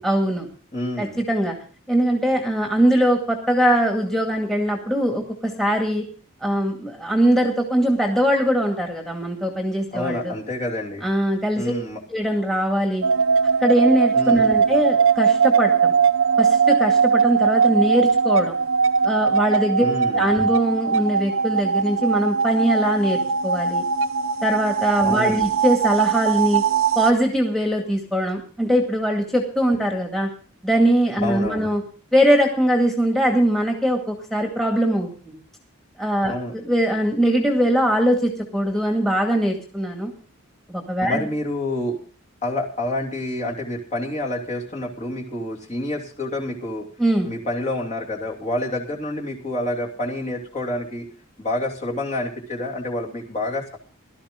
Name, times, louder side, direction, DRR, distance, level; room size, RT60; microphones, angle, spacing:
voice 1, 0.0-0.5 1.0-1.5 1.9-6.1 6.4-10.3 11.0-11.6 12.1-13.0 13.6-15.9 16.4-18.6 19.0-19.9 20.1-23.8 24.4-26.6 27.0-30.3 30.6-31.8 32.1-35.3 36.0-40.1 40.7-41.2 47.0-47.3, equal, ahead, 2 dB, 2.1 m, -21 dB
voice 2, 0.7-1.2 9.9-11.0 11.6-12.0 14.1-14.6 19.8-20.3 25.0-25.5 31.2-31.7 36.3-36.7 41.0-42.0 42.4-46.9 47.2-51.1 51.4-53.8, left 1 dB, 35° left, -1 dB, 2.8 m, -28 dB
sound 1, 13.0-27.1, right 6 dB, 75° right, 0.9 m, -20 dB
17.0 x 13.0 x 3.8 m, 0.39 s
head